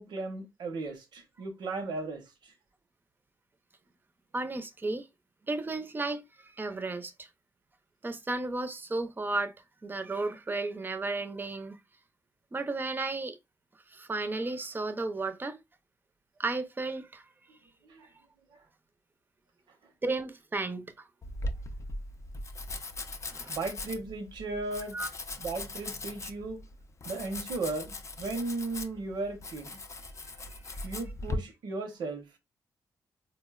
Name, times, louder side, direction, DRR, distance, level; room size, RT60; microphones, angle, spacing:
voice 1, 0.0-2.5 17.9-18.1 23.5-25.0 25.4-26.6 27.0-29.8 30.8-32.4, right 3 dB, 80° right, 0.7 m, -36 dB
voice 2, 4.3-5.1 5.4-7.3 8.0-9.5 9.8-11.8 12.5-13.4 13.9-15.6 16.4-17.2 20.0-21.0 23.3-23.6 24.9-25.1 30.5-30.8, right 3 dB, 25° right, 0.5 m, -34 dB
Domestic sounds home sounds, 21.2-31.4, left 2 dB, 40° left, 0.5 m, -39 dB
3.9 x 2.1 x 2.3 m
supercardioid pair, 55°, 7 cm